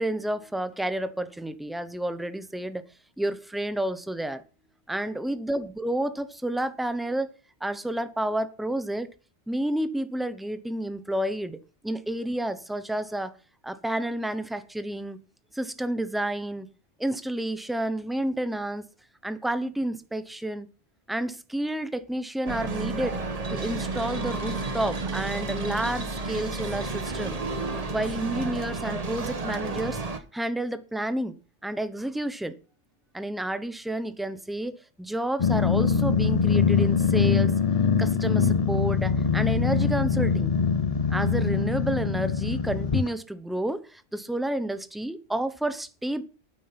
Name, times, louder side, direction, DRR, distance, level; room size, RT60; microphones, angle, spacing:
voice 1, 0.0-2.8 3.2-4.4 4.9-7.3 7.6-9.1 9.5-11.6 11.8-13.4 13.6-15.2 15.5-16.7 17.0-18.8 19.2-20.7 21.1-23.2 23.5-27.4 27.9-30.0 30.3-31.4 31.6-32.5 33.1-37.6 38.0-40.5 41.1-46.2, right 1 dB, ahead, 0.6 m, -30 dB
sound 1, 22.5-30.2, right 3 dB, 35° right, 1.2 m, -31 dB
Growling, 35.4-43.1, left 6 dB, 40° left, 0.7 m, -23 dB
9.3 x 9.0 x 5.8 m
omnidirectional pair, 1.2 m